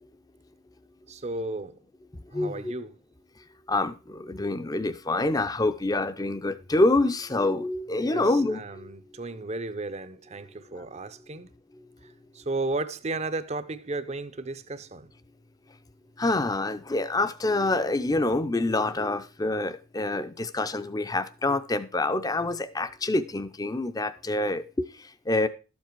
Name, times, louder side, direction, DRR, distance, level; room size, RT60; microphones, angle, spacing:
voice 1, 1.1-1.8 2.3-2.9 8.0-11.5 12.3-15.1, right 2 dB, 30° right, 0.6 m, -34 dB
voice 2, 2.3-2.7 3.7-8.9 10.8-10.9 16.2-25.5, left 2 dB, 15° left, 0.5 m, -26 dB
12.5 x 7.4 x 4.5 m
head